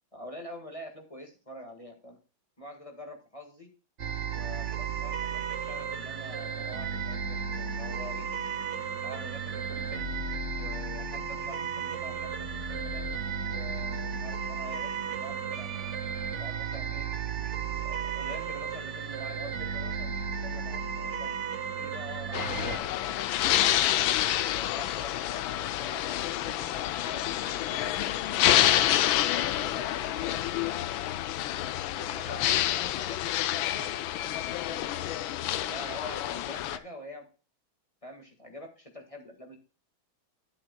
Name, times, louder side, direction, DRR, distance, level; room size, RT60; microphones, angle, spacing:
voice 1, 0.1-2.2 2.6-3.7 4.3-8.3 9.0-10.1 10.5-13.1 13.5-15.9 16.4-17.1 17.7-21.4 21.8-23.9 24.4-28.5 29.1-31.0 31.8-33.2 33.5-35.1 35.7-37.3 38.0-39.6, equal, 15° left, 2 dB, 1.6 m, -46 dB
sound 1, 4.0-22.8, right 6 dB, 45° right, 0.9 m, -34 dB
sound 2, 22.3-36.8, left 13 dB, 75° left, 1.4 m, -28 dB
12.5 x 8.0 x 2.2 m, 0.34 s
omnidirectional pair, 2.3 m